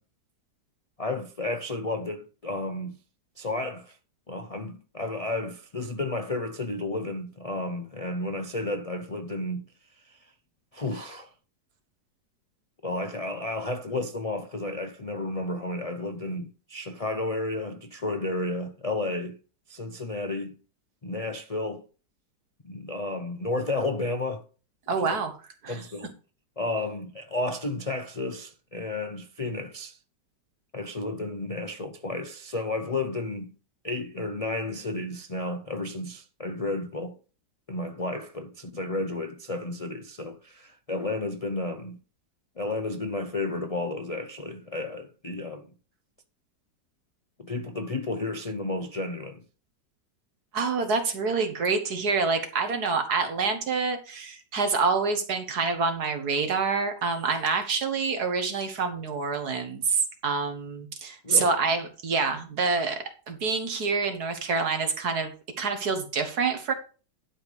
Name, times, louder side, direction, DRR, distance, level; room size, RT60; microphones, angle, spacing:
voice 1, 1.0-3.0 3.4-4.0 4.3-9.6 10.0-10.2 10.7-11.3 12.8-19.4 19.7-20.6 21.0-21.8 22.6-24.4 25.0-25.2 25.7-26.1 26.6-30.0 30.7-33.5 33.8-37.2 37.7-42.0 42.6-45.7 47.4-49.4 61.2-61.5, left 2 dB, 65° left, 0.3 m, -32 dB
voice 2, 24.9-25.3 25.6-25.8 50.5-65.3 65.6-66.7, right 4 dB, 60° right, 2.0 m, -27 dB
11.5 x 5.2 x 5.3 m
omnidirectional pair, 1.9 m